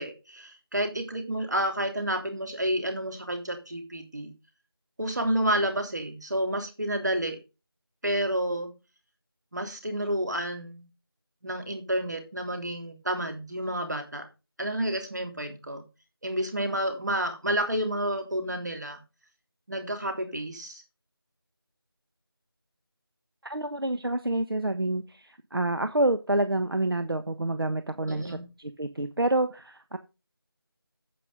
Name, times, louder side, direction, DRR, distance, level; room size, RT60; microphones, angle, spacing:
voice 1, 0.0-4.3 5.0-7.4 8.0-8.7 9.5-10.9 11.4-14.3 14.6-15.8 16.2-19.0 19.7-20.8 28.1-28.4, right 1 dB, 45° right, 5 dB, 3.2 m, -30 dB
voice 2, 23.4-30.0, right 2 dB, 65° right, 9 dB, 1.3 m, -28 dB
10.0 x 8.3 x 3.8 m, 0.28 s
figure-of-eight pair, 175°, 13 cm